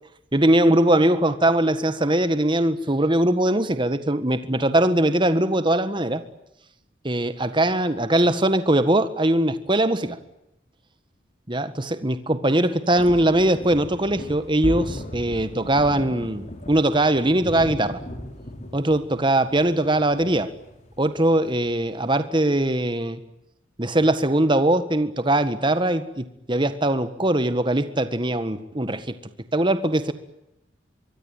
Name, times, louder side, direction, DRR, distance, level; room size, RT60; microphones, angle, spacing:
voice 1, 0.3-6.2 7.0-10.2 11.5-18.0 18.7-20.5 21.0-23.2 23.8-29.2 29.5-30.1, right 1 dB, 25° right, 11 dB, 1.7 m, -21 dB
sound 1, 13.0-22.1, equal, 40° left, 4.8 m, -37 dB
24.5 x 23.0 x 9.3 m, 0.84 s
head